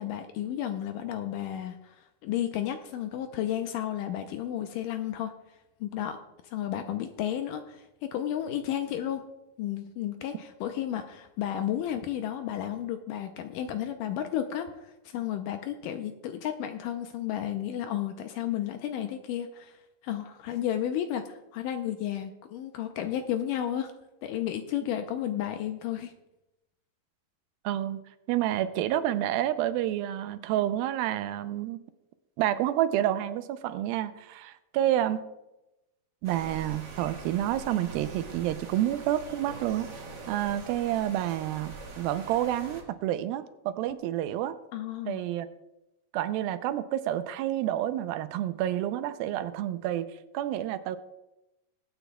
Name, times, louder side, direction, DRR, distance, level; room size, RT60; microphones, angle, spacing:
voice 1, 0.0-2.0 2.2-5.3 5.8-6.2 6.4-9.2 9.6-19.8 20.0-23.9 24.2-26.1 44.7-45.2, left 11 dB, 80° left, 6 dB, 2.1 m, -32 dB
voice 2, 27.6-28.0 28.3-31.8 32.4-35.2 36.2-39.9 40.3-44.6 45.1-45.5 46.1-50.1 50.3-51.0, right 12 dB, 85° right, 11 dB, 2.4 m, -29 dB
sound 1, 36.2-42.8, right 3 dB, 50° right, 1.3 m, -43 dB
21.0 x 9.1 x 2.3 m, 0.94 s
omnidirectional pair, 4.2 m